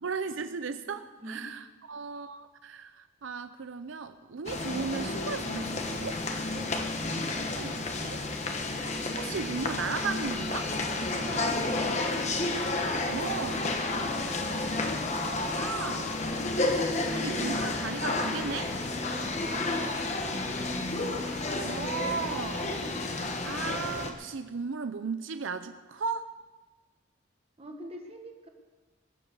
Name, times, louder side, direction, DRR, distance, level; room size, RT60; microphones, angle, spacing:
voice 1, 0.0-6.2 7.5-8.2 8.9-10.7 13.1-13.6 15.6-16.1 17.1-18.7 21.5-26.3, right 5 dB, 80° right, 10 dB, 0.6 m, -36 dB
sound 1, 4.5-24.1, left 2 dB, 35° left, 1.3 m, -31 dB
voice 2, 12.9-13.7 19.1-20.1 27.6-28.5, right 1 dB, 30° right, 3 dB, 1.7 m, -44 dB
21.5 x 7.7 x 6.8 m, 1.3 s
head